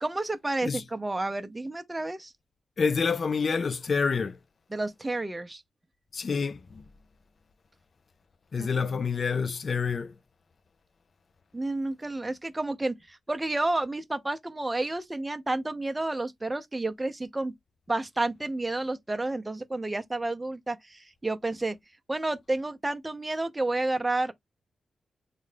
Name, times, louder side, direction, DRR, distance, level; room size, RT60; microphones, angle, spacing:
voice 1, 0.0-2.3 4.7-5.6 8.6-9.0 11.5-17.5 17.9-21.8 22.1-24.3, right 2 dB, 20° right, 0.6 m, -30 dB
voice 2, 2.8-4.4 6.1-6.8 8.5-10.1, left 5 dB, 55° left, 0.4 m, -27 dB
3.8 x 2.2 x 3.2 m
cardioid pair, 75°, 0 cm